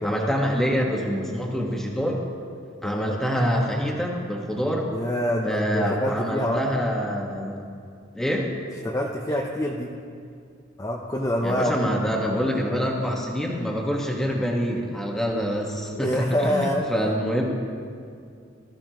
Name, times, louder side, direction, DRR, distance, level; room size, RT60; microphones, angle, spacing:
voice 1, 0.0-2.2 2.8-4.9 5.4-7.6 8.1-8.6 11.4-17.4, equal, ahead, -2 dB, 1.5 m, -26 dB
voice 2, 2.8-3.2 4.9-6.6 8.8-9.9 10.8-12.1 15.9-16.9, left 1 dB, 20° left, -2 dB, 0.8 m, -26 dB
19.5 x 13.5 x 3.1 m, 2.3 s
head